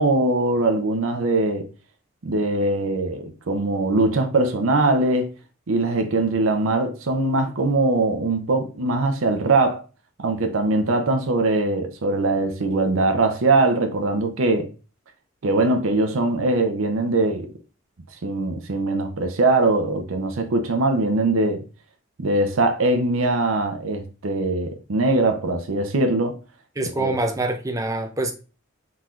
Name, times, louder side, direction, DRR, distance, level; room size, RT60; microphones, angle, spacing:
voice 1, 0.0-1.7 2.2-5.3 5.7-9.8 10.2-14.7 15.4-17.5 18.2-21.6 22.2-26.4 27.0-27.1, right 2 dB, 85° right, 0.7 m, -21 dB
voice 2, 26.8-28.3, right 2 dB, 15° right, 0.6 m, -25 dB
4.3 x 4.0 x 2.4 m
head